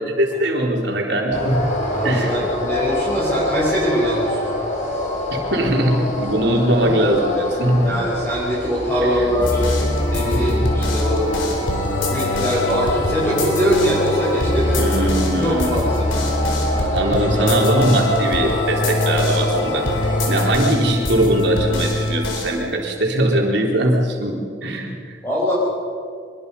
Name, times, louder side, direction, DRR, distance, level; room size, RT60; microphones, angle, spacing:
voice 1, 0.0-1.6 2.0-2.4 5.3-7.9 9.0-9.3 10.3-10.6 14.8-15.8 16.9-25.2, right 1 dB, 65° right, 0 dB, 3.8 m, -21 dB
sound 1, 1.3-20.5, left 1 dB, 40° left, 4.2 m, -26 dB
voice 2, 1.9-4.5 7.8-9.7 10.1-11.3 12.1-14.8 15.3-16.1 16.8-16.9 25.2-25.5, equal, 10° left, -8 dB, 5.4 m, -22 dB
sound 2, 9.4-22.6, left 1 dB, 90° left, 4.2 m, -23 dB
24.5 x 22.0 x 5.5 m, 2.2 s
head